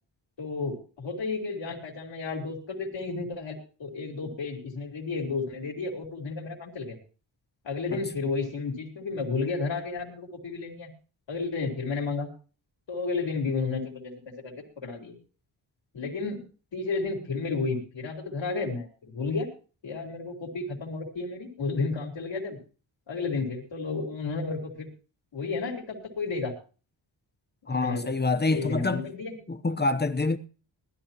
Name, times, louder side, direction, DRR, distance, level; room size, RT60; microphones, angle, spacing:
voice 1, 0.4-7.0 7.6-10.9 11.3-12.3 12.9-14.1 14.4-15.2 15.9-16.4 16.7-19.5 19.8-22.6 23.1-24.9 25.3-26.5 27.7-28.1 28.5-29.4, left 4 dB, 70° left, 4.6 m, -32 dB
voice 2, 27.7-29.0 29.5-30.4, left 3 dB, 20° left, 1.0 m, -26 dB
20.5 x 13.0 x 3.0 m
wide cardioid pair, 145°, 46 cm